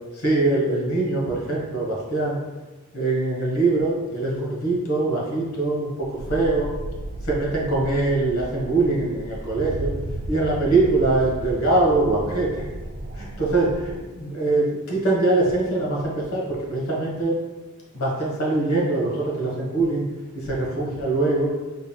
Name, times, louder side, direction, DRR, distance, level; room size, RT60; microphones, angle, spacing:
voice 1, 0.1-2.4 2.9-6.7 7.2-9.9 10.3-12.6 13.1-17.4 17.9-20.0 20.3-21.5, right 2 dB, 75° left, -3 dB, 1.4 m, -23 dB
sound 1, 6.1-14.0, right 1 dB, 45° right, 0.4 m, -34 dB
5.3 x 4.1 x 2.3 m, 1.2 s
head